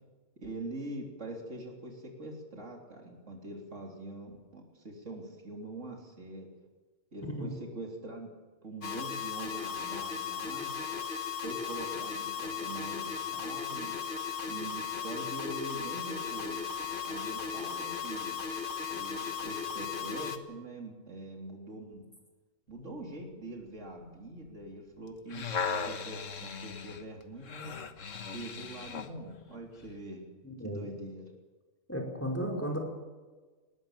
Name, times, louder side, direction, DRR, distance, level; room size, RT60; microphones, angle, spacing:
voice 1, 0.4-6.5 7.1-8.3 8.6-10.7 11.4-14.0 14.4-16.6 17.0-18.4 18.9-22.1 22.7-25.5 25.8-27.8 28.3-30.3 30.6-31.3, right 1 dB, 75° right, 0 dB, 3.9 m, -43 dB
sound 1, 8.8-20.4, left 6 dB, 45° left, 1.7 m, -36 dB
sound 2, 25.1-29.2 29.8-29.9, left 5 dB, 85° left, 1.7 m, -37 dB
voice 2, 30.4-30.9 31.9-32.8, equal, 10° left, 1 dB, 5.0 m, -34 dB
20.5 x 20.0 x 7.5 m, 1.3 s
omnidirectional pair, 1.3 m